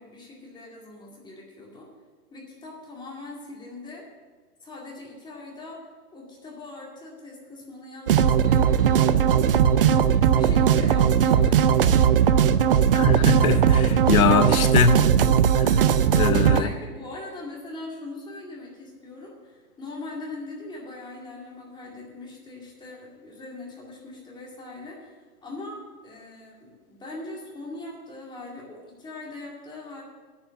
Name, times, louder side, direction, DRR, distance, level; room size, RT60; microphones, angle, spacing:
voice 1, 0.0-1.9 2.3-4.1 4.6-9.1 10.0-11.8 16.4-25.1 25.4-30.0, left 2 dB, 10° left, 2.2 m, -41 dB
sound 1, 8.1-16.6, right 8 dB, 40° right, 0.4 m, -19 dB
voice 2, 12.9-15.1 15.6-15.8 16.1-16.7, left 5 dB, 65° left, 1.0 m, -22 dB
8.8 x 7.4 x 8.8 m
hypercardioid pair, 125°, 46 cm